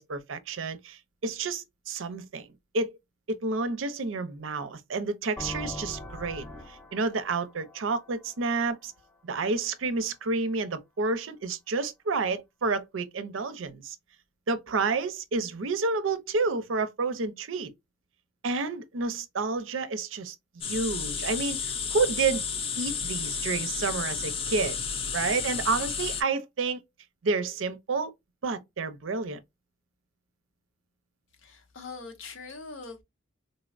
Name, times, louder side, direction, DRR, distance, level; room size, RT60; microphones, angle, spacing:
voice 1, 0.0-2.5 2.7-3.0 3.3-8.9 9.2-14.0 14.5-17.7 18.4-20.3 20.6-22.4 22.8-24.8 25.1-26.8 27.2-28.1 28.4-29.4, right 4 dB, 75° right, 0.5 m, -30 dB
sound 1, 5.4-9.1, left 1 dB, 10° left, 0.8 m, -41 dB
sound 2, 20.6-26.2, left 6 dB, 30° left, 0.4 m, -32 dB
voice 2, 31.4-33.0, left 4 dB, 80° left, 0.9 m, -42 dB
3.8 x 2.0 x 2.4 m
head